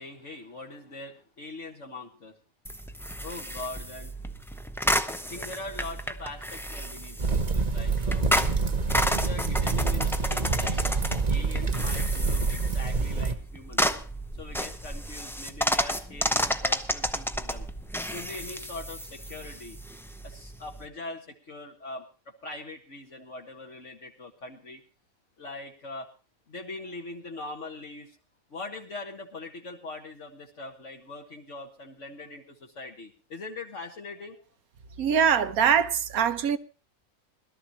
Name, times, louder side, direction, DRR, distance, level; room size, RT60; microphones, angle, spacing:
voice 1, 0.0-2.4 3.2-4.1 5.3-8.2 8.9-10.8 11.3-13.8 14.4-17.7 18.1-19.8 20.2-24.8 25.4-26.1 26.5-28.2 28.5-34.4, left 2 dB, 55° left, 1.8 m, -42 dB
sound 1, 2.6-20.9, equal, 5° left, 0.4 m, -32 dB
sound 2, 7.2-13.3, right 4 dB, 30° right, 1.1 m, -27 dB
voice 2, 35.0-36.6, right 7 dB, 85° right, 1.4 m, -23 dB
21.5 x 13.0 x 2.9 m
omnidirectional pair, 1.5 m